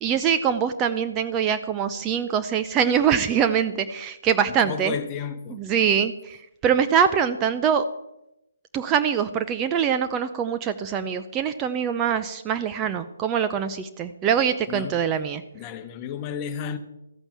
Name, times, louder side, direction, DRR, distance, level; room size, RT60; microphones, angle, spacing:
voice 1, 0.0-4.9 5.5-6.4 6.6-7.8 8.7-15.4, right 8 dB, 20° right, 0.6 m, -23 dB
voice 2, 4.6-5.6 14.7-15.0 15.5-16.8, left 7 dB, 25° left, 1.3 m, -32 dB
13.5 x 8.9 x 7.4 m
figure-of-eight pair, 145°, 0 cm